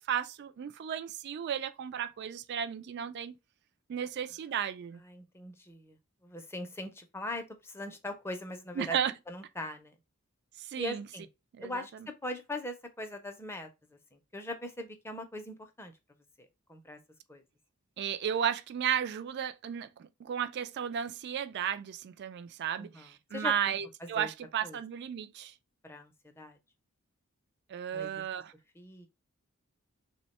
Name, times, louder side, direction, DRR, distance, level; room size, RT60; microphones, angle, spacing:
voice 1, 0.1-3.4 3.9-5.0 8.8-9.1 10.6-11.1 11.5-11.8 18.0-25.5 27.7-28.5, right 8 dB, 50° right, 0.3 m, -34 dB
voice 2, 5.0-6.0 6.2-9.0 9.3-9.9 10.8-11.3 11.6-13.7 14.1-15.9 16.7-17.0 17.3-17.4 22.8-23.7 24.0-24.3 24.6-24.8 25.8-26.6 27.9-28.2 28.8-29.1, left 1 dB, 10° left, 0.5 m, -41 dB
3.4 x 2.1 x 4.0 m
head